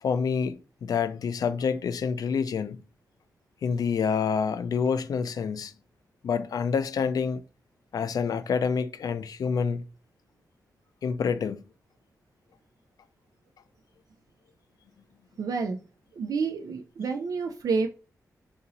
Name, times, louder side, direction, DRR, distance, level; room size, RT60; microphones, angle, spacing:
voice 1, 0.0-2.8 3.6-5.7 6.2-7.4 7.9-9.8 11.0-11.6, left 6 dB, 75° left, 0.3 m, -27 dB
voice 2, 15.4-15.8 16.2-17.9, right 4 dB, 70° right, 0.3 m, -29 dB
2.8 x 2.6 x 3.9 m
cardioid pair, 70°, 7 cm